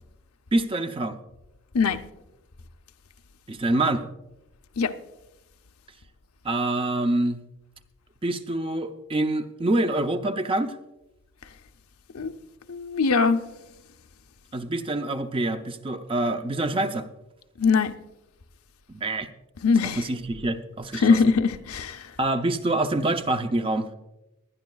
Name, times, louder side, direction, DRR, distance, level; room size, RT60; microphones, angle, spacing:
voice 1, 0.5-1.2 3.5-4.1 6.4-7.4 8.2-10.8 14.5-17.1 18.9-19.3 19.8-21.2 22.2-23.9, right 2 dB, 25° right, 0.5 m, -26 dB
voice 2, 12.7-13.5 17.6-17.9 19.6-20.0 20.9-22.1, left 5 dB, 80° left, 0.7 m, -22 dB
19.5 x 11.5 x 2.3 m
head